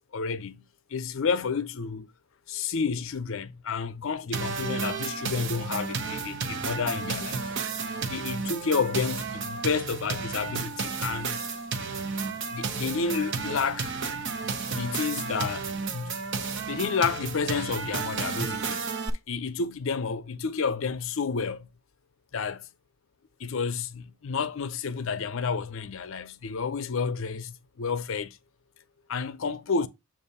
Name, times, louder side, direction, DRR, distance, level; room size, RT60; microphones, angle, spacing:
voice 1, 0.1-0.6 0.9-2.1 2.5-7.5 8.1-11.4 12.5-14.0 14.7-15.7 15.9-16.3 16.7-19.0 19.3-21.7 22.3-22.7 23.4-28.4 29.1-29.9, left 5 dB, 60° left, 0.6 m, -30 dB
sound 1, 4.3-19.1, right 5 dB, 55° right, 0.8 m, -32 dB
7.6 x 2.7 x 5.4 m
head